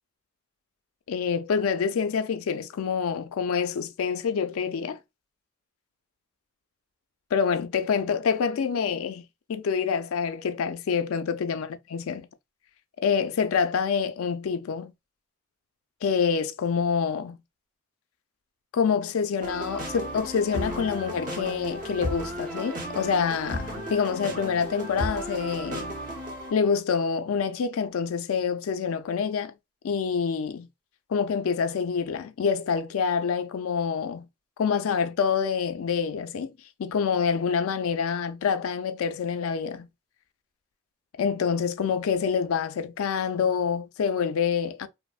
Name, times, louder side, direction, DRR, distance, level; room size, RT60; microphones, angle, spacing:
voice 1, 1.1-5.0 7.3-9.2 9.5-12.3 13.0-14.9 16.0-17.4 18.7-25.9 26.5-29.5 29.8-30.7 31.1-34.3 34.6-36.5 36.8-39.9 41.2-44.9, left 6 dB, 80° left, 0.4 m, -26 dB
sound 1, 19.4-26.5, equal, 40° right, 0.8 m, -34 dB
2.9 x 2.0 x 2.3 m
head